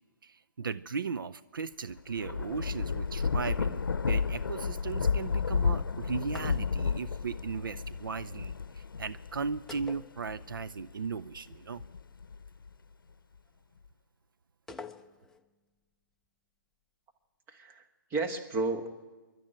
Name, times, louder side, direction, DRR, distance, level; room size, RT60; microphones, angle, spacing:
voice 1, 0.2-11.8, right 5 dB, 80° right, 15 dB, 0.6 m, -37 dB
Thunder / Rain, 1.9-10.8 11.4-12.7, left 5 dB, 85° left, 0.7 m, -32 dB
sound 1, 6.3-7.0 9.7-10.7 11.0-11.1 14.7-15.5, left 4 dB, 5° left, 0.6 m, -47 dB
voice 2, 17.5-18.9, right 3 dB, 20° right, 6 dB, 1.6 m, -33 dB
26.0 x 11.5 x 9.0 m, 1.3 s
hypercardioid pair, 140°, 11 cm